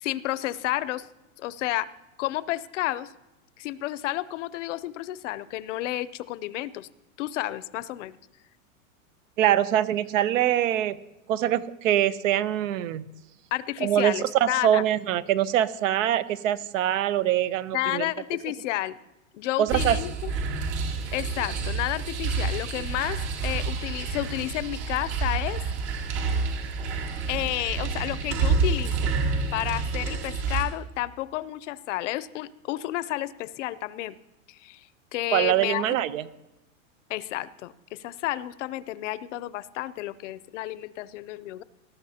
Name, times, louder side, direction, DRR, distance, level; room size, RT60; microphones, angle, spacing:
voice 1, 0.0-1.1 1.4-1.9 2.2-3.1 3.6-6.9 7.2-8.2 13.5-14.8 17.7-19.0 19.3-20.3 21.1-25.6 27.3-29.1 29.5-34.2 34.5-34.8 35.1-36.0 37.1-41.6, left 15 dB, 65° left, 17 dB, 0.6 m, -31 dB
voice 2, 9.4-11.0 11.3-13.1 13.8-18.1 19.6-20.0 35.3-36.2, right 11 dB, 75° right, 16 dB, 0.8 m, -24 dB
sound 1, 19.7-30.6, right 4 dB, 60° right, 2.8 m, -28 dB
19.5 x 13.0 x 2.8 m, 1.0 s
supercardioid pair, 150°, 39 cm